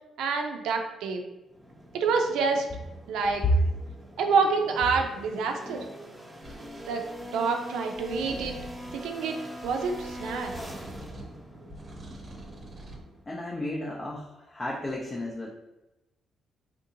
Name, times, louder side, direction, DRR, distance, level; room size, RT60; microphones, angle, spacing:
voice 1, 0.2-1.2 1.9-2.7 3.1-3.4 4.2-5.8 6.9-7.0 7.3-8.5 8.9-9.4 9.6-10.5, right 4 dB, 85° right, 4 dB, 0.5 m, -27 dB
sound 1, 1.5-13.3, equal, 5° right, 1.1 m, -43 dB
sound 2, 6.4-6.9 7.9-9.0 9.6-11.4 11.7-13.0, right 1 dB, 40° right, 0.7 m, -45 dB
voice 2, 13.3-15.5, left 1 dB, 25° left, -2 dB, 0.5 m, -34 dB
3.5 x 2.6 x 2.7 m, 0.95 s
cardioid pair, 90°, 0 cm